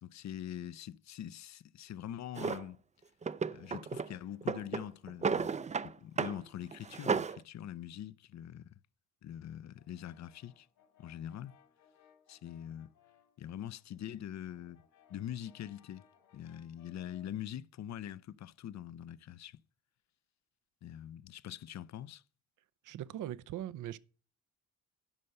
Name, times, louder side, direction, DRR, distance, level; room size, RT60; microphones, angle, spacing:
voice 1, 0.0-2.8 3.5-5.6 5.8-8.7 9.2-10.7 11.0-11.5 12.3-12.9 13.4-14.8 15.1-16.0 16.3-19.6 20.8-22.2, left 11 dB, 55° left, 0.6 m, -44 dB
Drawer open or close, 2.4-2.6 3.2-4.1 4.4-5.9 6.2-6.4 6.7-7.4, right 5 dB, 20° right, 0.4 m, -33 dB
Brass instrument, 9.8-13.4 13.8-17.4, left 8 dB, 75° left, 3.0 m, -66 dB
voice 2, 22.8-24.0, right 12 dB, 65° right, 0.6 m, -40 dB
11.0 x 5.4 x 6.5 m
supercardioid pair, 65°, 34 cm